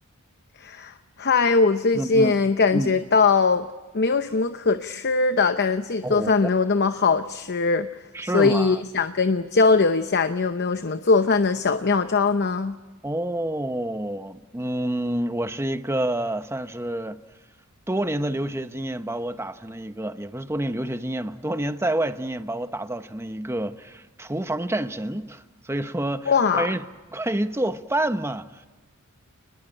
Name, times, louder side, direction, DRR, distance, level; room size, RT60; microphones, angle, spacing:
voice 1, 0.6-3.7 3.9-7.9 8.2-12.8 26.3-26.7, left 4 dB, 50° left, 0.8 m, -21 dB
voice 2, 1.9-2.3 2.7-2.9 6.0-6.5 8.1-8.8 13.0-17.2 17.9-26.8 27.1-28.7, right 1 dB, 10° right, 1.0 m, -28 dB
29.5 x 20.5 x 8.9 m
head